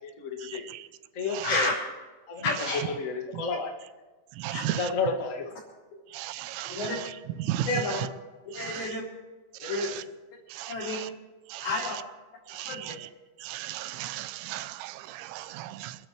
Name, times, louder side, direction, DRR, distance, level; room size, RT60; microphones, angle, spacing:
voice 1, 0.2-0.6 1.1-1.7 2.3-2.4 3.0-3.7 4.7-5.5, left 4 dB, 75° left, 0.7 m, -31 dB
voice 2, 1.4-1.8 2.4-2.8 3.5-3.6 4.5-4.7 6.7-7.0 7.7-8.0 8.6-9.0 9.6-10.0 10.7-11.0 11.6-12.0 12.6-12.9, left 3 dB, 55° left, 5.6 m, -30 dB
voice 3, 4.4-4.8 6.1-6.8 7.4-7.7 10.5-10.7 11.5-11.6 12.5-13.0 13.4-16.0, right 13 dB, 85° right, 3.2 m, -35 dB
28.0 x 13.5 x 3.3 m
omnidirectional pair, 5.4 m